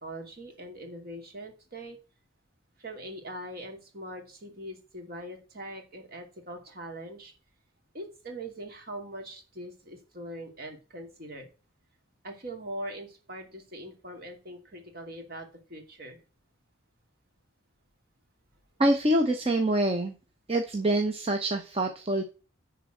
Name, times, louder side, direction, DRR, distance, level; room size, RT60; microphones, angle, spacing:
voice 1, 0.0-2.0 2.8-7.3 7.9-11.5 12.2-16.2, right 1 dB, 50° right, 4 dB, 2.5 m, -42 dB
voice 2, 18.8-20.1 20.5-22.2, right 1 dB, 30° right, 4 dB, 0.9 m, -25 dB
11.0 x 4.1 x 7.7 m, 0.34 s
head